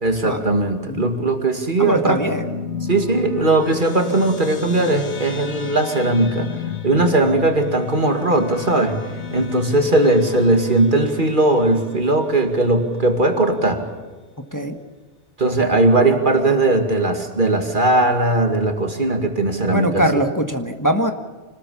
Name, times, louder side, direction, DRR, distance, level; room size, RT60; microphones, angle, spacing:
voice 1, 0.0-2.2 2.9-6.5 6.8-9.0 9.3-13.8 15.4-20.0, right 2 dB, 45° right, 5 dB, 2.5 m, -18 dB
sound 1, 1.8-12.6, left 7 dB, 80° left, 1.8 m, -33 dB
voice 2, 1.8-2.5 14.5-14.7 19.7-21.1, equal, 15° left, 5 dB, 1.4 m, -21 dB
26.0 x 19.5 x 7.1 m, 1.4 s
omnidirectional pair, 1.2 m